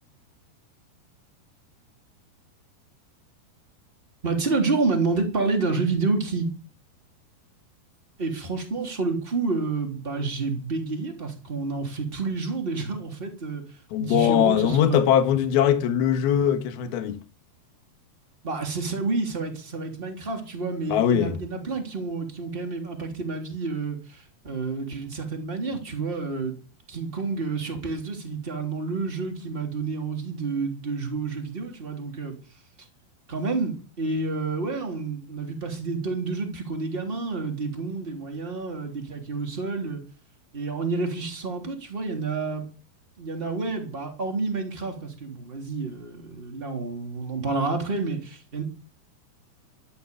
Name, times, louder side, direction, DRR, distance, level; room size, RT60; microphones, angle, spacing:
voice 1, 4.2-6.5 8.2-13.6 14.0-15.0 18.4-26.6 26.9-32.4 33.3-40.0 40.5-42.6 43.2-48.6, right 4 dB, 15° right, 2.9 m, -29 dB
voice 2, 13.9-17.2 20.9-21.4, left 9 dB, 70° left, 3.3 m, -21 dB
13.5 x 12.0 x 7.1 m
omnidirectional pair, 4.8 m